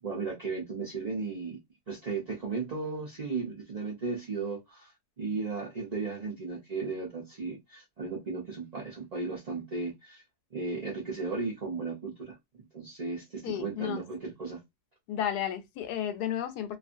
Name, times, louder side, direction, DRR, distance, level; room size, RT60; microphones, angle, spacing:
voice 1, 0.0-1.6 1.9-4.9 5.2-10.2 10.5-14.6, right 4 dB, 40° right, 0.5 m, -35 dB
voice 2, 13.4-14.0 15.1-16.8, left 10 dB, 85° left, 1.1 m, -32 dB
2.6 x 2.4 x 2.5 m
omnidirectional pair, 1.7 m